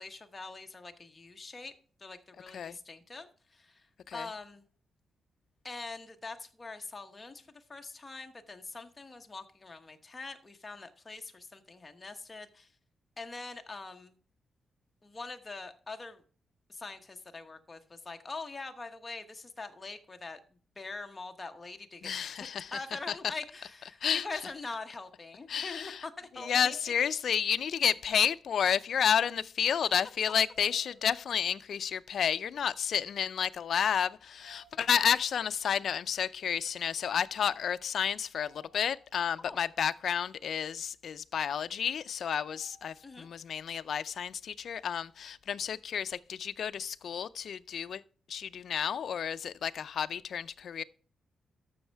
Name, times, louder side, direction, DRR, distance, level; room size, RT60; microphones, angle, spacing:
voice 1, 0.0-1.7 2.0-4.6 5.6-12.7 13.2-14.2 15.0-16.2 16.7-20.4 20.8-22.1 22.4-26.8 39.4-39.6 43.0-43.3, left 3 dB, 20° left, 1.0 m, -43 dB
voice 2, 22.0-22.7 24.0-24.3 25.5-26.0 26.4-48.0 48.3-50.8, left 8 dB, 60° left, 0.4 m, -31 dB
sound 1, 26.4-27.9 30.4-31.9 34.4-35.7 38.4-39.7 42.4-43.3, right 1 dB, 65° right, 5.0 m, -59 dB
12.5 x 6.3 x 3.4 m
wide cardioid pair, 150°, 0 cm